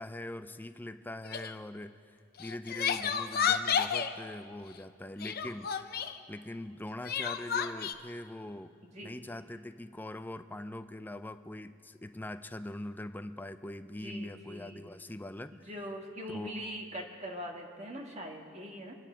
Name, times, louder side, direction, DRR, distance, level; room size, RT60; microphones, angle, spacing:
voice 1, 0.0-5.9 6.3-8.7 9.0-15.7 16.3-16.7, left 1 dB, 10° left, 10 dB, 0.4 m, -42 dB
Crying sobbing, 1.2-1.5 2.4-4.1 5.2-6.2 7.0-7.9, left 7 dB, 50° left, 0.7 m, -31 dB
voice 2, 8.8-9.1 14.0-14.8 15.5-18.9, equal, 35° right, 0 dB, 1.6 m, -42 dB
25.5 x 10.0 x 5.1 m, 2.3 s
head